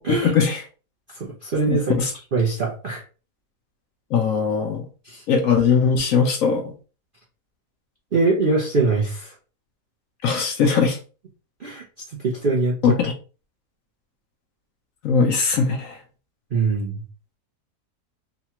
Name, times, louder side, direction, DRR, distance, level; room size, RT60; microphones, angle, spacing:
voice 1, 0.1-0.6 1.7-2.1 4.1-4.9 5.3-6.6 10.2-11.0 12.8-13.1 15.0-16.0, left 6 dB, 65° left, 3 dB, 0.9 m, -20 dB
voice 2, 1.2-3.0 5.0-5.2 8.1-9.3 11.6-11.8 12.2-13.0 16.5-17.0, right 3 dB, 55° right, -4 dB, 0.6 m, -23 dB
3.9 x 2.2 x 2.8 m, 0.34 s
omnidirectional pair, 1.8 m